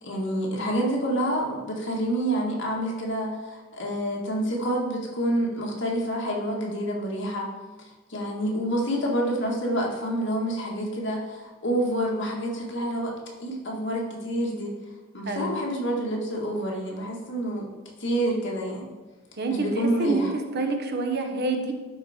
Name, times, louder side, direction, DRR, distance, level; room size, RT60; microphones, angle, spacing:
voice 1, 0.0-7.5 7.8-13.1 13.4-14.8 15.1-17.7 18.0-18.9 19.5-20.3, right 1 dB, 65° left, -2 dB, 1.8 m, -28 dB
voice 2, 15.3-15.6 19.4-19.7 20.0-21.7, right 3 dB, 55° right, 4 dB, 1.0 m, -27 dB
11.5 x 4.5 x 4.3 m, 1.3 s
head